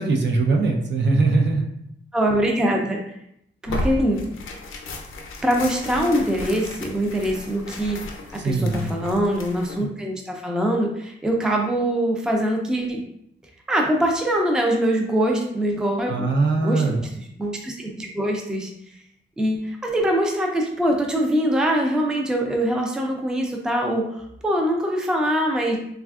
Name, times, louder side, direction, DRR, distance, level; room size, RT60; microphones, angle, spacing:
voice 1, 0.0-1.6 8.4-8.9 16.1-17.0, right 3 dB, 60° right, 2 dB, 0.5 m, -21 dB
voice 2, 2.1-3.0 3.6-4.2 5.4-8.0 8.3-13.0 13.7-16.3 16.6-16.8 17.2-18.7 19.4-25.8, right 1 dB, 5° right, 1 dB, 0.3 m, -23 dB
Tearing, 3.7-9.8, left 1 dB, 80° left, 0.5 m, -34 dB
3.3 x 2.3 x 2.3 m, 0.74 s
wide cardioid pair, 125°, 21 cm